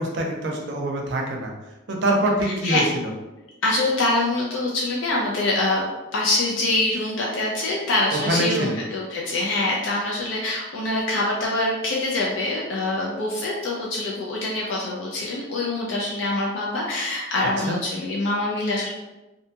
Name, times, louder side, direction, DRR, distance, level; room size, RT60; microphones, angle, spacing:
voice 1, 0.0-1.5 1.9-3.1 8.1-8.8 17.7-17.8, right 1 dB, 60° right, 1 dB, 0.5 m, -24 dB
voice 2, 2.4-2.8 3.6-5.8 6.1-18.9, left 2 dB, 70° left, -3 dB, 0.4 m, -24 dB
2.7 x 2.2 x 2.7 m, 1.0 s
head